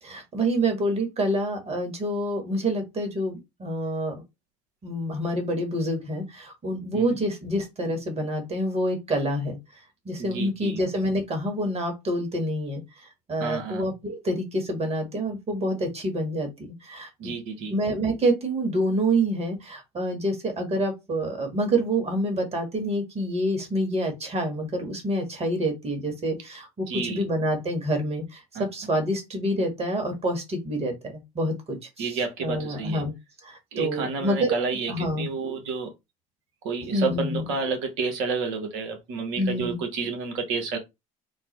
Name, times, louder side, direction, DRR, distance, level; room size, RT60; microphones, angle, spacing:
voice 1, 0.0-4.1 4.8-9.6 10.0-12.8 13.3-17.3 17.7-33.1 33.4-34.6 34.9-35.3 36.9-37.5 39.4-39.8, right 1 dB, 35° right, 1.6 m, -27 dB
voice 2, 10.2-10.8 13.4-13.8 17.2-17.7 26.9-27.2 28.5-28.6 32.0-33.0 33.7-35.9 36.6-40.8, right 4 dB, 70° right, 1.1 m, -30 dB
3.7 x 2.1 x 3.1 m
hypercardioid pair, 65°, 18 cm